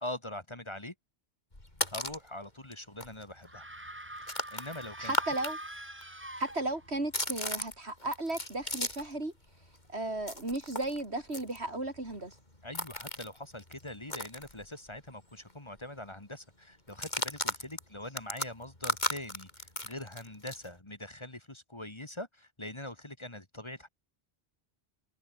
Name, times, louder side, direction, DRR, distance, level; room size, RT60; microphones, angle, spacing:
voice 1, 0.0-0.9 1.9-3.6 4.5-5.1 12.6-23.9, left 1 dB, 25° left, 2.2 m, -43 dB
sound 1, 1.5-2.3 2.7-2.8 3.0-5.5 5.8-9.2 9.5-15.1 15.4-15.5 15.8-16.1 16.9-20.7, left 1 dB, 45° left, 5.7 m, -37 dB
sound 2, 3.4-7.1, right 1 dB, 10° right, 1.7 m, -44 dB
voice 2, 5.0-5.6 6.4-9.3 9.9-12.4, right 2 dB, 90° right, 5.2 m, -35 dB
omnidirectional pair, 1.1 m